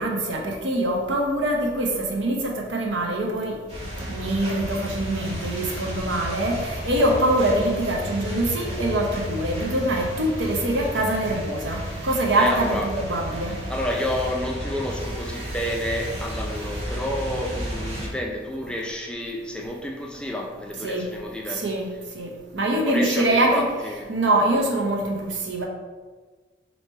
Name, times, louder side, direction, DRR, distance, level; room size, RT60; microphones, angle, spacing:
voice 1, 0.0-3.6 4.1-13.6 20.8-21.1 21.5-21.9 22.1-23.7 24.1-25.7, right 1 dB, 80° right, 0 dB, 0.8 m, -24 dB
sound 1, 3.7-18.1, equal, 35° right, 1.1 m, -32 dB
voice 2, 12.3-12.9 13.7-21.6 22.9-24.1, left 1 dB, 5° left, 0 dB, 0.3 m, -30 dB
3.0 x 2.8 x 4.4 m, 1.4 s
head